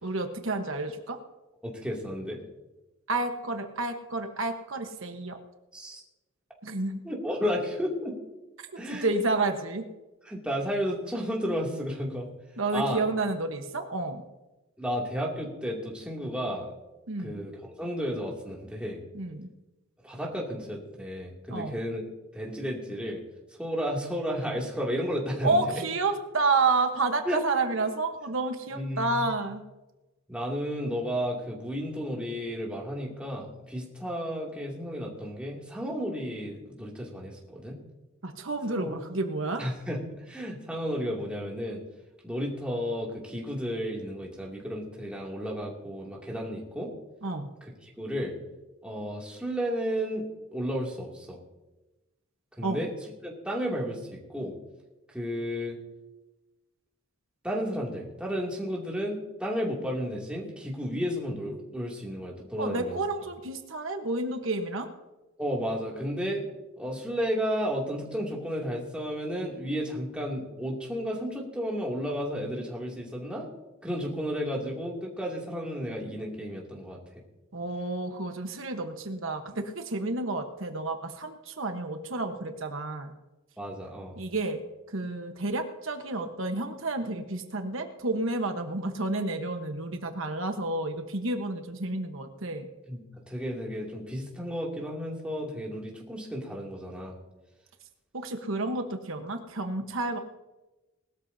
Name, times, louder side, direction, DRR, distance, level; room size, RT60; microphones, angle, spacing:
voice 1, 0.0-1.2 3.1-5.4 6.6-7.0 8.9-9.9 12.6-14.2 17.1-17.4 19.1-19.5 21.5-21.8 25.4-29.6 38.2-39.6 47.2-47.5 52.6-52.8 62.6-64.9 77.5-83.1 84.2-84.6 84.9-92.7 98.1-100.2, right 3 dB, 65° right, 5 dB, 1.2 m, -30 dB
voice 2, 1.6-2.4 5.7-6.0 7.0-8.2 8.8-9.2 10.2-12.3 12.7-13.0 14.8-16.7 17.2-19.0 20.0-22.0 22.3-23.2 23.6-25.6 27.3-27.4 28.7-29.3 30.3-37.8 38.8-39.0 39.6-41.8 42.2-46.9 47.8-48.3 48.8-51.4 52.6-52.9 53.2-54.5 55.1-55.8 57.4-63.0 65.4-66.4 66.8-73.5 73.8-77.0 83.6-84.2 92.9-93.0 93.3-97.2, equal, 5° right, -3 dB, 2.5 m, -32 dB
19.5 x 13.0 x 2.8 m, 1.1 s
head